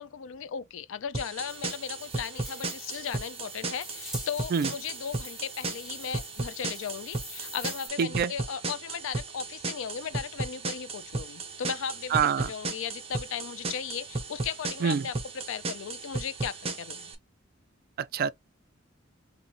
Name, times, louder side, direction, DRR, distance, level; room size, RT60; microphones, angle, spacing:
voice 1, 0.0-17.1, left 7 dB, 70° left, 0.4 m, -36 dB
sound 1, 1.1-17.1, right 3 dB, 30° right, 0.8 m, -36 dB
sound 2, 1.5-7.9, equal, ahead, 1.9 m, -46 dB
voice 2, 8.0-8.3 12.1-12.5 14.8-15.1 18.0-18.3, right 7 dB, 50° right, 0.3 m, -26 dB
3.9 x 2.7 x 2.8 m
head